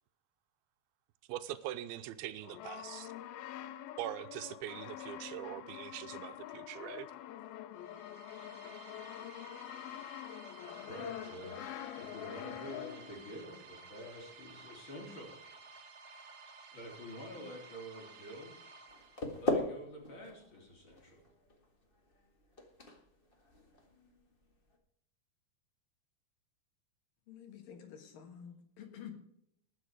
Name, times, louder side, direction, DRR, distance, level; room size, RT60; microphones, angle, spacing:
voice 1, 1.3-3.1 4.0-7.1, right 12 dB, 85° right, 11 dB, 2.5 m, -42 dB
Brass instrument, 2.4-13.2, left 12 dB, 90° left, 2.5 m, -46 dB
sound 1, 7.7-19.6, right 4 dB, 60° right, 2.3 m, -54 dB
voice 2, 10.9-15.4 16.1-16.3 16.7-18.7 19.4-21.2, equal, 30° left, -1 dB, 4.2 m, -48 dB
sound 2, 18.9-24.8, left 1 dB, 50° left, 0.6 m, -40 dB
voice 3, 27.3-29.2, left 8 dB, 70° left, 5 dB, 3.1 m, -49 dB
20.0 x 7.2 x 4.9 m, 0.73 s
omnidirectional pair, 4.3 m